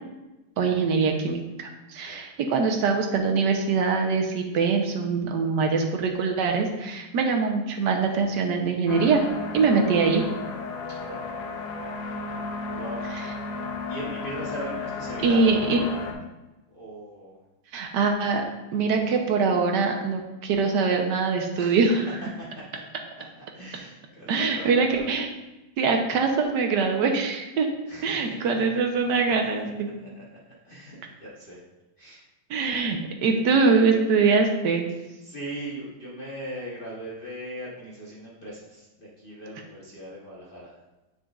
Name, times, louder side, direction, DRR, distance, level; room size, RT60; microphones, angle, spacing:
voice 1, 0.6-9.2 9.5-10.2 15.2-15.8 17.7-18.4 18.7-22.0 24.3-25.3 25.8-27.7 28.0-29.9 32.5-34.9, right 4 dB, 70° right, 3 dB, 1.4 m, -23 dB
sound 1, 8.9-16.1, left 3 dB, 80° left, 1.5 m, -34 dB
voice 2, 11.0-11.3 12.7-13.0 13.9-16.0 16.7-17.4 21.5-21.8 22.4-22.5 23.4-25.1 27.9-28.4 29.1-29.7 30.0-30.2 30.6-31.6 32.0-32.2 35.0-40.8, right 1 dB, 35° left, -7 dB, 1.1 m, -39 dB
7.4 x 6.7 x 2.4 m, 1.0 s
omnidirectional pair, 2.0 m